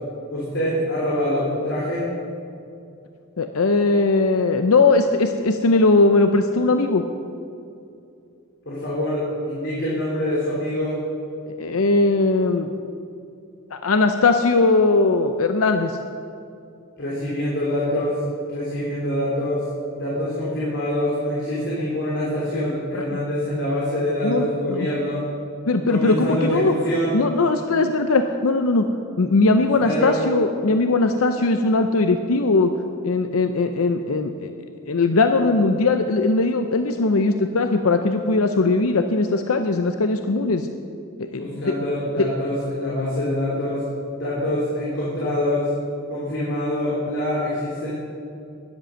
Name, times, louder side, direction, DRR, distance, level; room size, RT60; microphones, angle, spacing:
voice 1, 0.3-2.0 8.6-11.0 17.0-18.2 18.5-19.6 19.9-25.2 25.9-27.2 29.8-30.2 41.3-43.8 44.1-45.7 46.1-48.0, left 1 dB, 55° left, -7 dB, 3.3 m, -25 dB
voice 2, 3.4-7.0 11.5-12.7 13.7-16.0 22.9-23.1 24.2-24.9 25.7-26.7 27.1-28.9 29.2-32.7 33.0-34.5 34.9-40.7 41.2-41.7 42.2-42.3, left 3 dB, 80° left, 7 dB, 0.6 m, -19 dB
13.0 x 10.5 x 6.3 m, 2.5 s
head